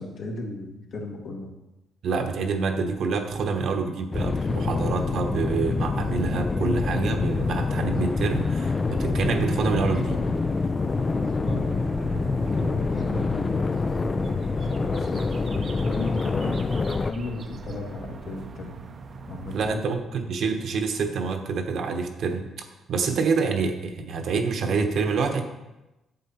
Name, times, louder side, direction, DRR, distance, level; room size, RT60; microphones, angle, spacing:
voice 1, 0.0-1.5 11.1-11.7 12.4-13.7 14.6-18.8 19.3-19.8, left 2 dB, 65° left, 0 dB, 1.9 m, -36 dB
voice 2, 2.0-10.2 19.5-25.4, right 4 dB, 65° right, 5 dB, 1.1 m, -27 dB
sound 1, 4.1-17.1, left 4 dB, 30° left, 0.3 m, -26 dB
sound 2, 7.3-19.8, right 5 dB, 45° right, 0.6 m, -39 dB
8.0 x 7.3 x 4.4 m, 0.99 s
cardioid pair, 90°, 0 cm